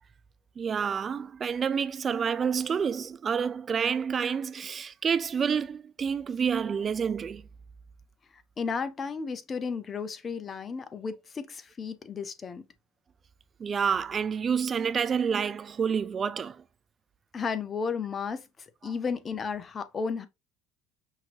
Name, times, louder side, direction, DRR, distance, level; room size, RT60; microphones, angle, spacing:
voice 1, 0.6-7.4 13.6-16.6, right 6 dB, 35° right, 0.4 m, -28 dB
voice 2, 8.6-12.6 17.3-20.3, left 5 dB, 35° left, 0.7 m, -33 dB
5.7 x 3.0 x 2.9 m
hypercardioid pair, 80°, 0 cm